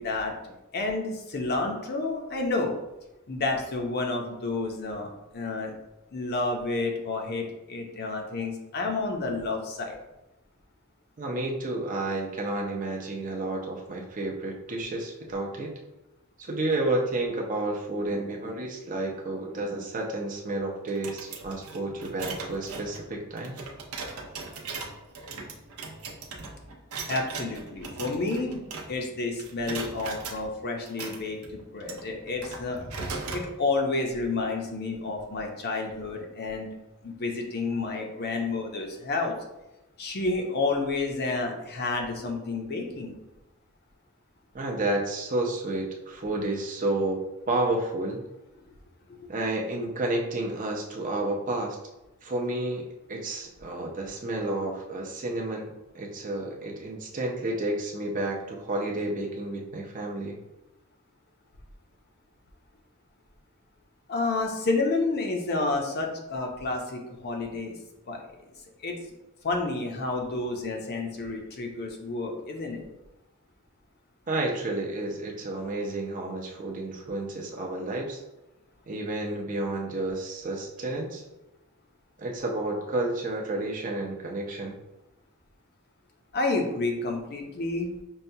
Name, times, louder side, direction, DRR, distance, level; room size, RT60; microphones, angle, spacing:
voice 1, 0.0-2.7 3.3-5.7 6.1-10.0 27.1-28.6 28.9-32.9 33.3-36.7 37.0-39.3 40.0-43.2 49.2-49.3 64.1-67.7 68.1-68.2 68.8-69.0 69.4-72.8 86.3-87.9, left 3 dB, 45° left, 2 dB, 0.6 m, -30 dB
voice 2, 11.2-15.7 16.4-23.6 44.5-48.3 49.3-51.8 52.2-60.4 74.3-78.2 78.9-81.2 82.2-84.8, right 2 dB, 35° right, 0 dB, 0.5 m, -31 dB
sound 1, 20.9-29.1 29.4-30.4 30.9-33.5, right 4 dB, 80° right, 0.6 m, -39 dB
5.4 x 2.2 x 2.7 m, 0.97 s
head